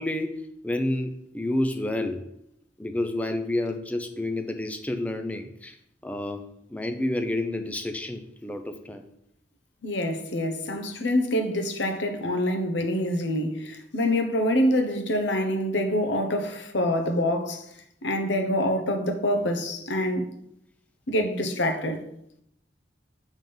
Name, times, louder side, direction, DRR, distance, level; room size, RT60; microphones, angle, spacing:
voice 1, 0.0-2.2 2.8-5.8 6.0-9.0, left 1 dB, 10° left, 0.4 m, -29 dB
voice 2, 9.8-17.6 18.0-20.3 21.1-22.0, left 1 dB, 85° left, 1.0 m, -26 dB
7.4 x 3.6 x 5.4 m
head